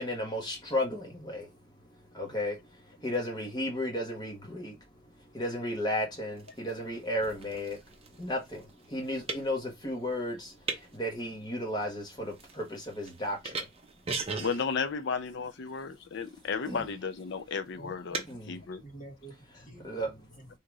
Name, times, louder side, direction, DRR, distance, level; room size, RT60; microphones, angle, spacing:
voice 1, 0.0-1.5 2.1-2.5 3.0-4.7 5.3-7.8 8.2-8.6 8.9-10.5 10.9-12.6 13.0-13.4 16.7-16.8 18.3-18.5 19.8-20.1, left 1 dB, 20° left, 1.4 m, -33 dB
sound 1, 6.3-18.3, right 4 dB, 30° right, 0.9 m, -42 dB
voice 2, 14.4-18.8, left 5 dB, 55° left, 0.5 m, -34 dB
voice 3, 17.7-18.2 18.8-20.5, equal, 40° left, 1.6 m, -48 dB
3.8 x 2.8 x 4.7 m
head